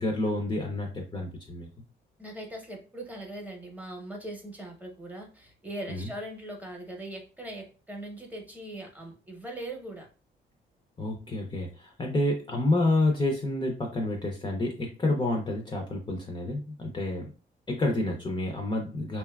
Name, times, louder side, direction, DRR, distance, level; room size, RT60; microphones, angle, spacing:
voice 1, 0.0-1.7 5.9-6.1 11.0-17.3 17.7-19.2, left 2 dB, 20° left, 1 dB, 0.5 m, -29 dB
voice 2, 2.2-10.1, right 1 dB, 10° right, 1 dB, 0.8 m, -40 dB
2.7 x 2.2 x 2.2 m, 0.35 s
cardioid pair, 90°, 20 cm